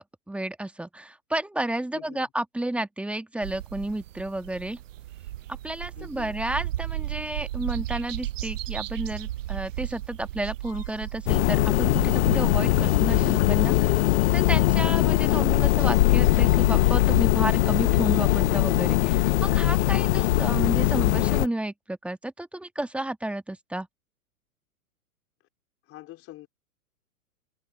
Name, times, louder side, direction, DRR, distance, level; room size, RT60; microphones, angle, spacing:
voice 1, 0.0-4.8 5.6-14.0 14.3-23.9, right 1 dB, 5° right, 1.6 m, -32 dB
voice 2, 1.9-2.3 5.9-6.4 25.8-26.5, left 16 dB, 30° left, 4.3 m, -46 dB
sound 1, 3.4-21.0, right 14 dB, 55° right, 0.8 m, -37 dB
sound 2, 10.6-11.1 11.6-19.1, left 4 dB, 85° left, 7.3 m, -54 dB
sound 3, 11.3-21.5, left 16 dB, 50° left, 0.8 m, -21 dB
figure-of-eight pair, 110°, 44 cm